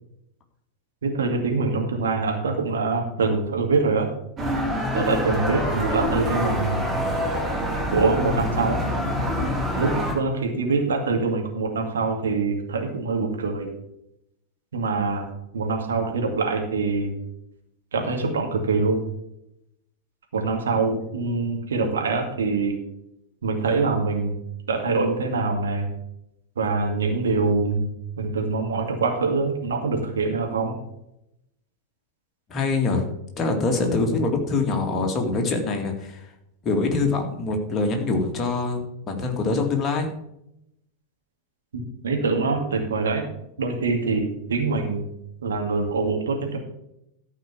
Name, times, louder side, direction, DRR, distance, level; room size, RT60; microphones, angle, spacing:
voice 1, 1.0-4.1 4.9-6.9 7.9-8.8 9.8-13.7 14.7-17.2 17.9-19.0 20.3-22.8 23.4-24.4 24.7-26.0 26.6-27.9 28.2-30.8 41.7-43.3 43.6-45.1 45.4-46.6, right 4 dB, 65° right, 2 dB, 2.3 m, -24 dB
sound 1, 4.4-10.1, equal, 25° right, 3.0 m, -26 dB
voice 2, 32.5-33.1 33.4-36.3 36.6-40.1, left 3 dB, 25° left, 3 dB, 2.3 m, -24 dB
13.5 x 4.9 x 7.3 m, 0.80 s
figure-of-eight pair, 90°, 0 cm